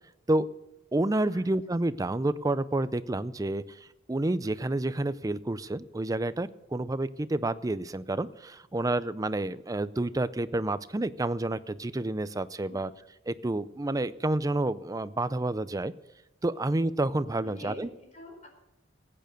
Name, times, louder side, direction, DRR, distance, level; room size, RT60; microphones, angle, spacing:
voice 1, 0.9-12.9 13.3-15.9 16.4-17.9, right 2 dB, 20° right, 15 dB, 0.5 m, -29 dB
voice 2, 17.4-18.5, left 1 dB, 35° left, 2 dB, 4.7 m, -47 dB
15.5 x 9.1 x 6.5 m, 0.94 s
head